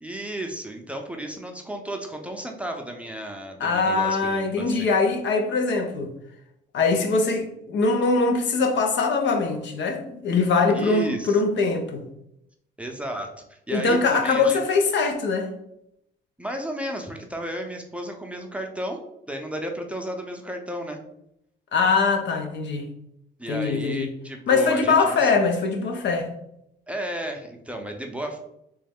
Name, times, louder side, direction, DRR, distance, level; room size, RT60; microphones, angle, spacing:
voice 1, 0.0-4.9 10.7-11.4 12.8-14.6 16.4-19.0 19.3-21.0 23.4-25.3 26.9-28.4, right 1 dB, 5° right, 2 dB, 0.5 m, -33 dB
voice 2, 3.6-6.1 6.7-12.0 13.7-15.5 21.7-22.9 23.5-24.1 24.5-26.3, left 4 dB, 65° left, 4 dB, 0.7 m, -22 dB
3.2 x 3.1 x 3.5 m, 0.80 s
cardioid pair, 90°, 20 cm